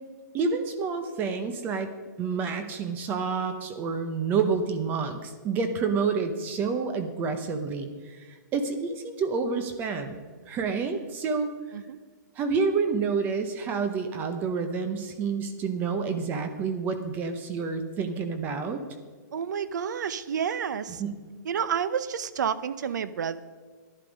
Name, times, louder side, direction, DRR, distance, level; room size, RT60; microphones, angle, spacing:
voice 1, 0.3-1.9 2.2-10.2 10.5-11.5 12.4-18.8 21.0-21.1, right 5 dB, 20° right, 8 dB, 0.8 m, -29 dB
voice 2, 19.3-21.0 21.4-23.4, right 7 dB, 65° right, 15 dB, 0.8 m, -30 dB
11.5 x 11.5 x 5.2 m, 1.5 s
hypercardioid pair, 160°, 10 cm